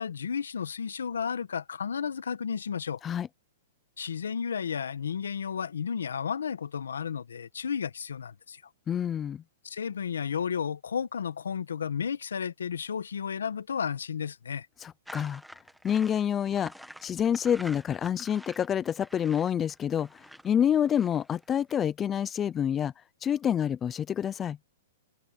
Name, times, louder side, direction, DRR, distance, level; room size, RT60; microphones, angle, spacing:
voice 1, 0.0-3.0 4.0-8.6 9.6-14.7, left 7 dB, 90° left, 1.2 m, -33 dB
voice 2, 8.9-9.4 14.8-15.4 15.8-16.7 17.0-20.1 20.4-22.9 23.2-24.6, left 9 dB, 20° left, 0.6 m, -27 dB
sound 1, 15.1-21.7, equal, ahead, 1.7 m, -48 dB
hypercardioid pair, 135°, 0 cm